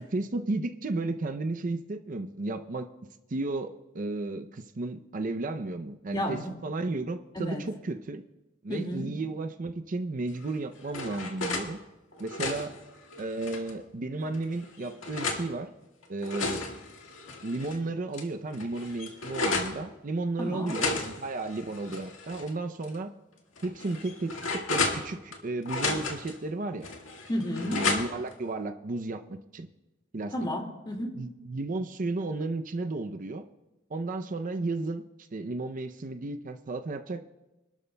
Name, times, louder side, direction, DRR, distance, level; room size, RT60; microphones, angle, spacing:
voice 1, 0.0-2.9 3.3-8.2 8.6-11.8 12.2-12.7 13.2-15.7 16.1-16.7 17.4-23.1 23.6-26.9 27.7-29.7 30.1-30.3 31.1-33.4 33.9-35.0 35.3-37.3, right 2 dB, 45° right, 7 dB, 0.5 m, -33 dB
voice 2, 6.1-6.5 7.4-7.6 8.7-9.1 20.4-20.8 27.3-27.8 30.3-31.1, equal, 25° left, 1 dB, 2.1 m, -32 dB
sound 1, 10.4-11.7 12.1-13.8 14.3-15.5 16.0-17.8 18.1-18.2 18.5-19.8 20.6-22.5 22.8-22.9 23.6-25.4 25.7-26.3 26.8-28.3, left 3 dB, 85° left, 1.8 m, -33 dB
25.5 x 12.0 x 2.2 m, 1.0 s
head